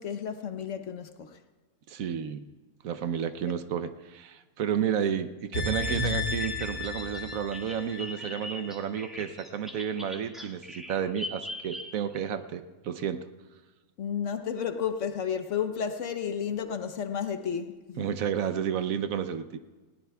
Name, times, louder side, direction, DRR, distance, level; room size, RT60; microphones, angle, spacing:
voice 1, 0.0-1.4 3.5-3.6 14.0-18.1, left 7 dB, 60° left, 1.0 m, -32 dB
voice 2, 1.9-2.5 2.8-13.2 18.0-19.6, right 8 dB, 70° right, 1.1 m, -31 dB
sound 1, 5.5-8.8 9.1-9.2, left 3 dB, 80° left, 3.1 m, -33 dB
Bird vocalization bird call bird song, 5.6-12.2, left 1 dB, ahead, 1.6 m, -41 dB
19.5 x 17.0 x 2.3 m
omnidirectional pair, 1.6 m